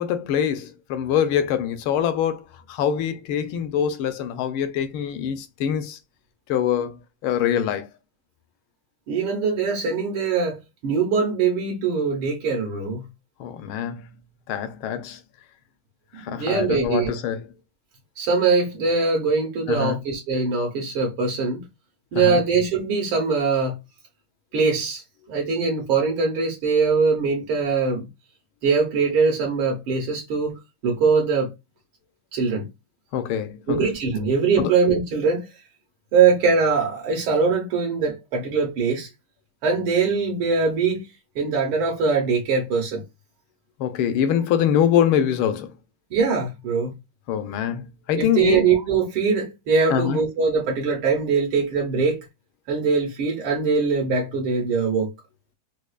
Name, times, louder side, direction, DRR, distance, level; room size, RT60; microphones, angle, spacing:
voice 1, 0.0-6.0 6.5-7.9 13.4-14.1 14.5-15.2 16.2-17.5 19.7-20.0 22.1-22.4 33.1-33.9 34.6-34.7 43.8-45.8 47.3-48.6 49.9-50.2, left 9 dB, 75° left, 1.4 m, -24 dB
voice 2, 9.1-13.0 16.1-17.1 18.2-21.6 22.1-23.8 24.5-25.0 25.3-28.1 28.6-31.5 32.3-32.7 33.7-35.5 36.1-39.1 39.6-41.1 41.4-43.0 46.1-46.9 48.2-52.2 52.7-55.1, right 5 dB, 80° right, 1.8 m, -22 dB
4.7 x 2.3 x 2.3 m
omnidirectional pair, 2.4 m